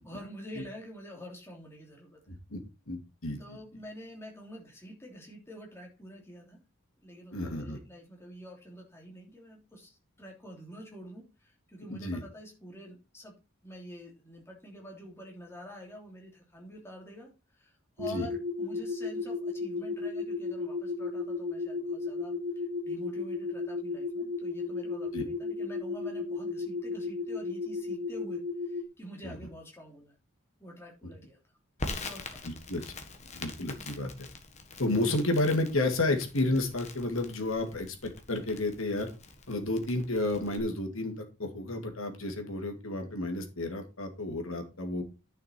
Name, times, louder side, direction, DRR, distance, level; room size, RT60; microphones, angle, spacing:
voice 1, 0.0-2.2 3.4-6.6 7.0-13.3 13.6-30.1 30.6-31.4 31.8-32.4, equal, 10° left, -1 dB, 3.0 m, -47 dB
voice 2, 2.3-2.6 2.9-3.4 7.3-7.8 11.9-12.2 18.1-18.3 25.1-25.3 29.2-29.4 32.4-32.8 33.3-34.3 34.8-39.1 39.5-45.0, left 2 dB, 75° left, 5 dB, 2.4 m, -31 dB
sound 1, 18.0-28.8, left 4 dB, 60° right, 1.2 m, -34 dB
Crackle, 31.8-40.6, left 3 dB, 30° left, 1.5 m, -44 dB
10.5 x 5.9 x 4.5 m, 0.29 s
head